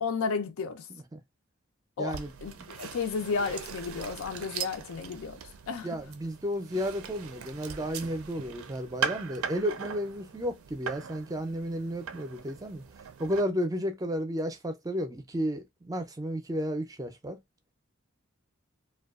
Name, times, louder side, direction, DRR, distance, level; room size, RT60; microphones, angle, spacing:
voice 1, 0.0-0.9 2.0-5.4 5.7-6.0, left 5 dB, 85° left, 0.4 m, -33 dB
voice 2, 2.0-2.3 5.8-12.8 13.2-17.4, equal, 15° right, 0.4 m, -32 dB
sound 1, 2.1-13.4, right 6 dB, 80° right, 0.4 m, -40 dB
2.6 x 2.3 x 2.3 m
head